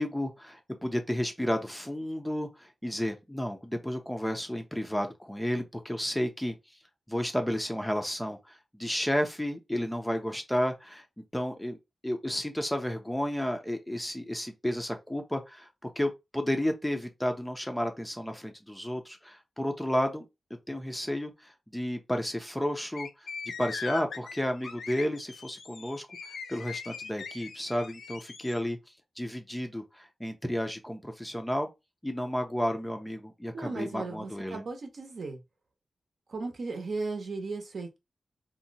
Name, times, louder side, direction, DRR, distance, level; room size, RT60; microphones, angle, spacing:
voice 1, 0.0-6.6 7.1-11.1 11.3-11.8 12.0-15.7 16.0-20.3 20.7-23.1 23.6-28.8 29.2-31.7 32.0-34.6, equal, 5° left, 0.4 m, -32 dB
sound 1, 22.9-28.6, left 5 dB, 85° left, 0.4 m, -41 dB
voice 2, 33.5-35.4 36.3-38.0, right 3 dB, 60° right, 0.8 m, -36 dB
2.7 x 2.1 x 3.9 m
wide cardioid pair, 155°, 0 cm